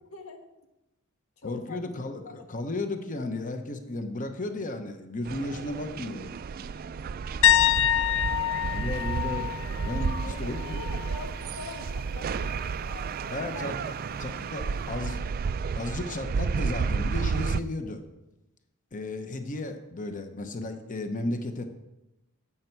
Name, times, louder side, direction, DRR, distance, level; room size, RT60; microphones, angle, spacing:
voice 1, 0.1-0.5 1.4-1.8 2.2-2.5 3.0-3.1 8.7-8.9 10.2-15.1, left 2 dB, 80° left, 4 dB, 1.5 m, -45 dB
voice 2, 1.4-6.3 8.6-9.5 9.8-10.8 13.3-13.9 14.2-15.2 15.8-18.0 18.9-21.7, left 2 dB, 40° left, 7 dB, 0.9 m, -34 dB
sound 1, 5.2-17.6, right 5 dB, 45° right, 0.3 m, -32 dB
sound 2, 7.4-11.2 11.5-11.8 14.7-14.8, left 11 dB, 65° left, 0.4 m, -26 dB
11.5 x 8.0 x 4.6 m, 0.95 s
head